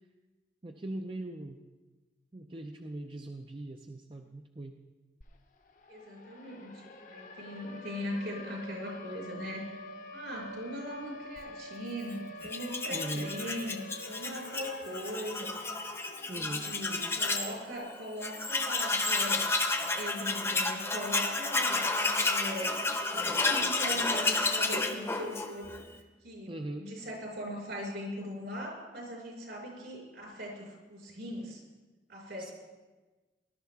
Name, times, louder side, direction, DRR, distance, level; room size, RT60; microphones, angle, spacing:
voice 1, 0.6-1.6 2.3-4.8 12.9-13.3 16.3-16.7 26.5-26.9 32.4-32.5, right 1 dB, 30° right, 4 dB, 0.5 m, -40 dB
Siren, 5.2-5.3 5.6-17.6, left 1 dB, 45° left, 0.9 m, -47 dB
voice 2, 5.9-6.8 7.1-9.8 10.1-15.6 16.3-22.8 23.1-25.8 26.2-31.6 32.1-32.5, equal, 70° right, -2 dB, 5.2 m, -40 dB
Tools, 12.4-17.5 17.9-18.0 18.2-25.8, left 3 dB, 15° left, 0.8 m, -31 dB
19.5 x 12.0 x 3.6 m, 1.2 s
head